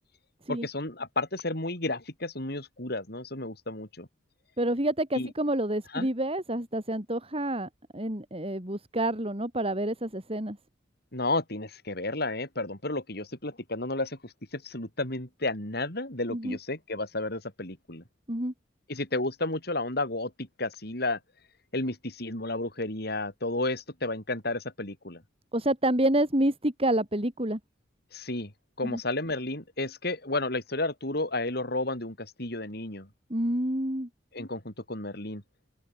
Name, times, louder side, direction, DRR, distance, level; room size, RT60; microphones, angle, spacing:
voice 1, 0.5-4.1 5.1-5.3 5.9-6.1 11.1-18.0 18.9-21.2 21.7-25.2 28.1-28.5 28.8-33.1 34.3-35.4, left 2 dB, 60° left, 6.7 m, -32 dB
voice 2, 4.6-10.6 16.3-16.6 18.3-18.5 25.5-27.6 28.8-29.0 33.3-34.1, right 1 dB, 30° right, 5.6 m, -28 dB
open air
head